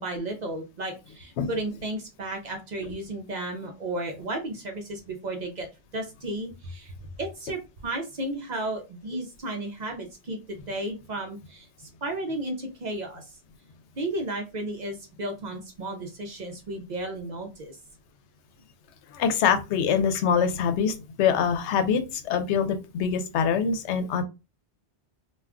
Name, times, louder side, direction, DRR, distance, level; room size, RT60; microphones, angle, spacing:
voice 1, 0.0-5.7 5.9-6.9 7.2-11.7 12.0-13.2 14.0-17.8, right 1 dB, 50° right, 3 dB, 0.6 m, -33 dB
voice 2, 19.1-24.2, left 7 dB, 90° left, 9 dB, 0.9 m, -24 dB
2.3 x 2.2 x 3.6 m, 0.28 s
omnidirectional pair, 1.1 m